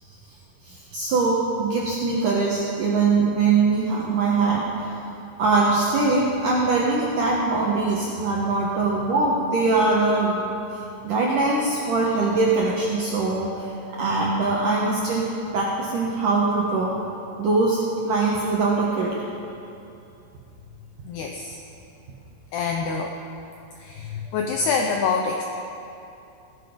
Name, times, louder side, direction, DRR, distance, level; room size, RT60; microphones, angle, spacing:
voice 1, 0.6-4.9 5.4-10.4 10.7-13.7 14.0-16.9 17.4-19.2, right 3 dB, 70° right, -4 dB, 2.0 m, -22 dB
voice 2, 21.1-21.6 22.5-23.1 23.8-25.4, left 5 dB, 80° left, 2 dB, 2.3 m, -26 dB
16.0 x 14.0 x 5.2 m, 2.7 s
omnidirectional pair, 5.7 m